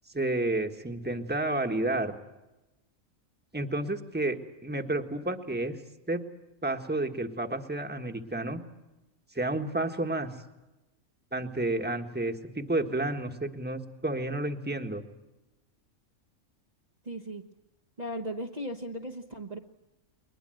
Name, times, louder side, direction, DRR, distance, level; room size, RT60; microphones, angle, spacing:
voice 1, 0.1-2.2 3.5-5.8 6.1-6.2 6.6-8.6 9.3-10.3 11.3-15.0, right 2 dB, 10° right, 5 dB, 1.5 m, -31 dB
voice 2, 17.0-17.4 18.0-19.6, equal, 35° right, 2 dB, 1.2 m, -37 dB
21.5 x 21.5 x 7.8 m, 1.0 s
omnidirectional pair, 1.4 m